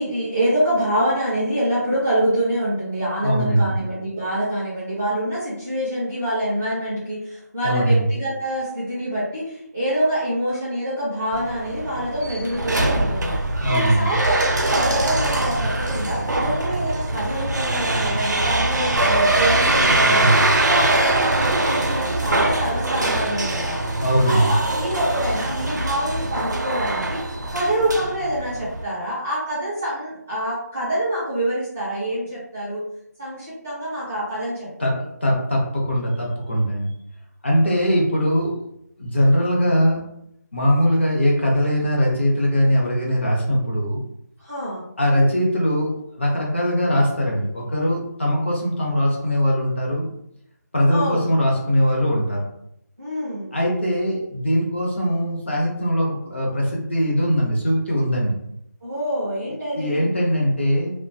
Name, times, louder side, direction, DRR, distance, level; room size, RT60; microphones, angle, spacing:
voice 1, 0.0-13.4 13.7-23.8 24.2-32.8 33.2-35.0 44.4-44.8 50.9-51.3 53.0-53.5 58.8-60.0, right 1 dB, 5° right, -12 dB, 0.4 m, -26 dB
voice 2, 3.2-3.7 7.6-8.0 13.6-14.1 20.0-20.5 24.0-24.5 34.8-36.9 37.4-38.5 39.0-40.0 40.5-44.0 45.0-45.9 46.2-50.1 50.7-52.4 53.5-58.4 59.7-60.9, equal, 40° left, -2 dB, 0.6 m, -21 dB
sound 1, 11.3-28.8, right 2 dB, 85° right, 0.5 m, -22 dB
2.2 x 2.1 x 2.6 m, 0.75 s
figure-of-eight pair, 175°, 10 cm